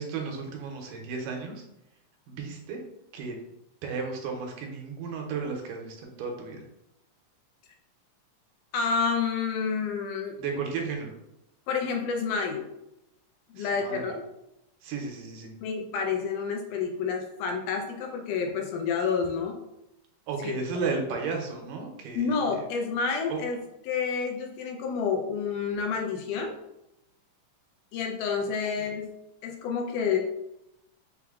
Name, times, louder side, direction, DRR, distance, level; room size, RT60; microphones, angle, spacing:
voice 1, 0.0-1.6 2.3-2.8 3.1-3.4 3.8-6.6 10.4-11.1 13.6-14.1 14.8-15.6 20.3-22.5 23.3-23.4, right 5 dB, 80° right, 2 dB, 2.3 m, -34 dB
voice 2, 8.7-10.3 11.7-12.7 13.5-14.3 15.6-19.6 20.4-20.6 22.2-23.6 23.9-26.5 27.9-29.1 29.4-30.2, left 5 dB, 80° left, 2 dB, 2.0 m, -29 dB
5.6 x 2.1 x 3.5 m, 0.86 s
omnidirectional pair, 3.8 m